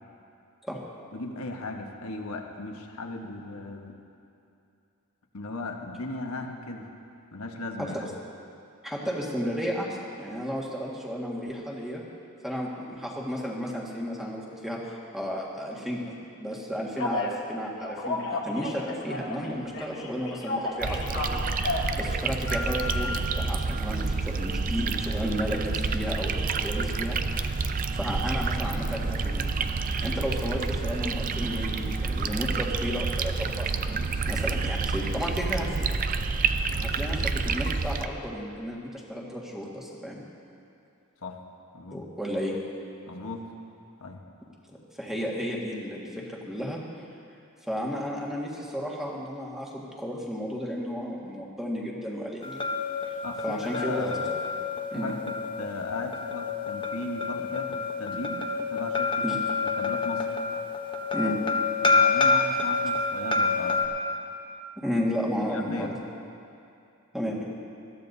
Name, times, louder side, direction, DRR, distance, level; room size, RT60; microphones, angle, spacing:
voice 1, 1.1-4.0 5.3-6.9 7.3-8.1 36.6-36.9 41.2-41.4 41.7-42.0 43.1-43.5 44.0-44.2 53.2-54.2 54.9-59.2 59.6-60.3 61.8-63.9 65.3-66.0, left 2 dB, 85° left, 3 dB, 1.2 m, -37 dB
voice 2, 8.8-12.0 12.4-14.8 15.1-21.4 21.9-27.2 27.9-29.5 30.0-35.9 36.9-40.2 41.9-42.5 45.0-46.8 47.6-52.6 53.4-54.3 54.9-55.1 59.2-59.4 61.1-61.4 64.8-65.9 67.1-67.4, equal, ahead, -4 dB, 1.7 m, -33 dB
Telephone, 17.0-17.3 17.8-19.5 19.7-21.9 22.5-23.2, left 2 dB, 65° left, 1.7 m, -32 dB
sound 1, 20.8-38.1, right 4 dB, 40° right, 0.4 m, -29 dB
sound 2, 52.4-63.8, left 4 dB, 25° left, 0.9 m, -28 dB
21.0 x 14.0 x 2.7 m, 2.6 s
head